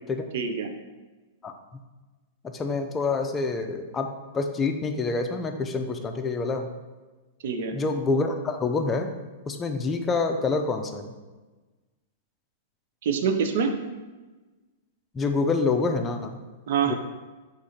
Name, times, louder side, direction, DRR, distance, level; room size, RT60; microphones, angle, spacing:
voice 1, 0.3-0.7 7.4-7.7 13.0-13.7 16.7-16.9, right 6 dB, 60° right, 6 dB, 0.6 m, -25 dB
voice 2, 2.4-6.7 7.7-9.1 9.4-11.1 15.1-16.4 16.9-17.0, left 3 dB, 20° left, 5 dB, 0.5 m, -27 dB
4.8 x 2.5 x 4.1 m, 1.2 s
hypercardioid pair, 105°, 0 cm